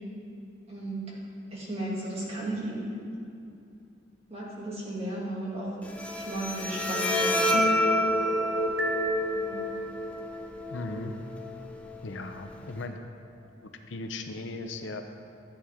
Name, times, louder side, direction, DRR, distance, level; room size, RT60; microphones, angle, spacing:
voice 1, 0.7-1.2 1.5-2.9 4.3-5.7 6.1-7.5 9.3-9.6, right 1 dB, 30° right, -5 dB, 2.4 m, -34 dB
Bowed string instrument, 5.8-12.8, left 1 dB, 5° left, 0.6 m, -30 dB
sound 1, 7.1-10.5, right 2 dB, 85° right, 1.0 m, -31 dB
voice 2, 10.7-11.1 12.0-13.0 13.9-15.0, left 2 dB, 70° left, 5 dB, 0.7 m, -37 dB
14.5 x 8.5 x 3.7 m, 2.6 s
head